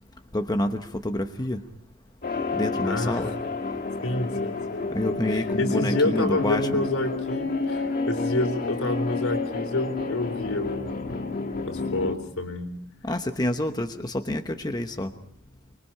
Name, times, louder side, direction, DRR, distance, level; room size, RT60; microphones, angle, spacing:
voice 1, 0.3-1.6 2.5-3.3 4.9-6.9 13.0-15.1, left 1 dB, 20° left, 6 dB, 1.0 m, -28 dB
sound 1, 2.2-12.2, left 3 dB, 45° left, 1.9 m, -30 dB
voice 2, 2.8-3.2 4.0-4.9 5.3-11.2 11.7-12.7, left 2 dB, 80° left, 6 dB, 3.8 m, -28 dB
24.5 x 23.0 x 5.6 m, 0.65 s
head